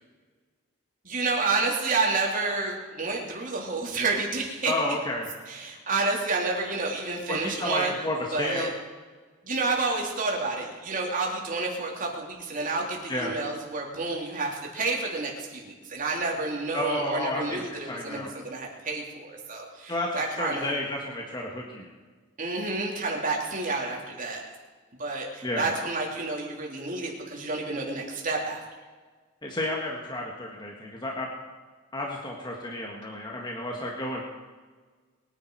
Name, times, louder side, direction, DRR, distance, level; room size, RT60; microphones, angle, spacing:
voice 1, 1.0-4.7 5.5-7.9 8.3-8.7 9.4-20.8 22.4-24.4 25.0-28.6, right 3 dB, 40° right, -1 dB, 3.2 m, -29 dB
voice 2, 4.7-5.3 7.3-8.7 13.1-13.3 16.7-18.3 19.9-21.9 25.4-25.7 29.4-31.3 31.9-34.2, left 1 dB, 20° left, -1 dB, 1.8 m, -31 dB
22.0 x 10.5 x 4.8 m, 1.4 s
head